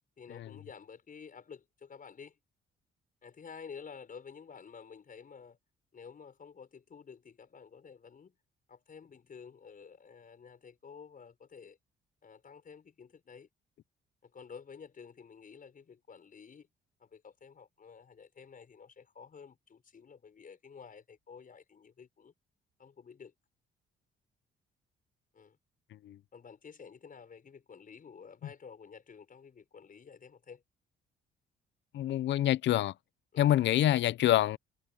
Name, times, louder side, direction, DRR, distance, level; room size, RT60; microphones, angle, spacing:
voice 1, 0.2-2.4 3.2-5.6 5.9-8.3 8.7-11.8 12.2-13.5 14.2-16.7 17.0-22.3 22.8-23.3 25.3-25.6 26.3-30.6 33.3-33.5, left 6 dB, 45° left, 6.3 m, -51 dB
voice 2, 31.9-32.9 33.4-34.6, left 12 dB, 65° left, 0.6 m, -26 dB
cardioid pair, 90°, 20 cm